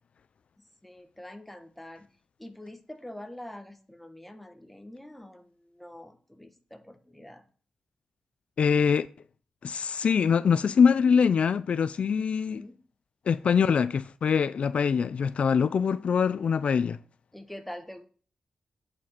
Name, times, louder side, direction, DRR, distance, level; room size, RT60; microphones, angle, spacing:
voice 1, 0.6-2.1 2.4-7.5 12.1-12.8 17.3-18.0, left 1 dB, 5° left, 1.2 m, -45 dB
voice 2, 8.6-9.1 9.6-12.6 13.3-17.0, left 6 dB, 65° left, 0.4 m, -23 dB
8.4 x 4.9 x 5.9 m
wide cardioid pair, 100°, 2 cm